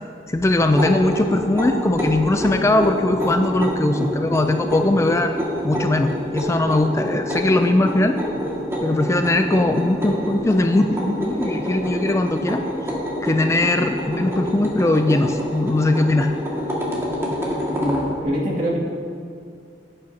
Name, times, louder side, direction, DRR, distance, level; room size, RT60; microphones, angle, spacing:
voice 1, 0.3-5.4 5.6-8.2 8.8-12.9 13.2-16.3, left 2 dB, 15° left, 7 dB, 0.3 m, -20 dB
sound 1, 0.6-18.1, equal, 15° right, 1.9 m, -27 dB
voice 2, 17.7-18.8, equal, 50° right, -5 dB, 2.3 m, -24 dB
15.5 x 8.9 x 2.8 m, 2.3 s
head